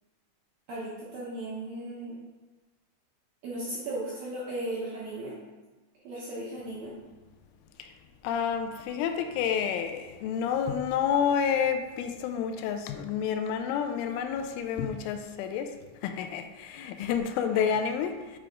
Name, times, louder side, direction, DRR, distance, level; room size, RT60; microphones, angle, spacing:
voice 1, 0.7-2.2 3.4-5.4 6.0-6.9 17.5-17.7, right 1 dB, 70° right, -7 dB, 2.2 m, -36 dB
voice 2, 8.2-15.7 16.0-18.4, left 7 dB, 85° left, 6 dB, 3.0 m, -29 dB
9.0 x 3.5 x 5.0 m, 1.2 s
omnidirectional pair, 5.6 m